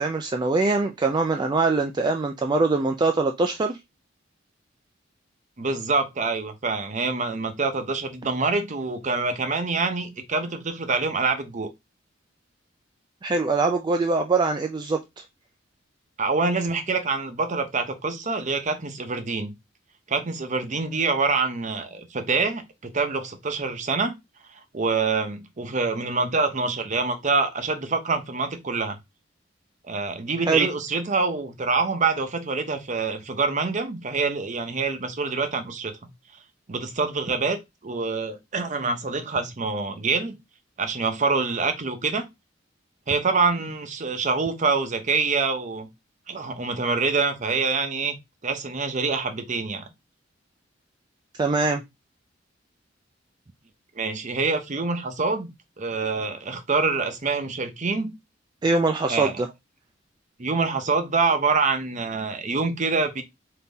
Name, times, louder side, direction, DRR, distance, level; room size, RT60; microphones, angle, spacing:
voice 1, 0.0-3.8 13.2-15.0 30.5-30.7 51.4-51.8 58.6-59.5, right 3 dB, 25° right, 0.3 m, -23 dB
voice 2, 5.6-11.7 16.2-19.5 20.1-24.1 24.7-29.0 29.9-35.9 36.7-37.6 37.8-40.4 40.8-42.2 43.1-45.9 46.3-48.2 48.4-49.9 54.0-55.5 55.8-58.1 59.1-59.4 60.4-63.2, right 4 dB, 40° right, 0.7 m, -25 dB
3.6 x 2.8 x 4.0 m
head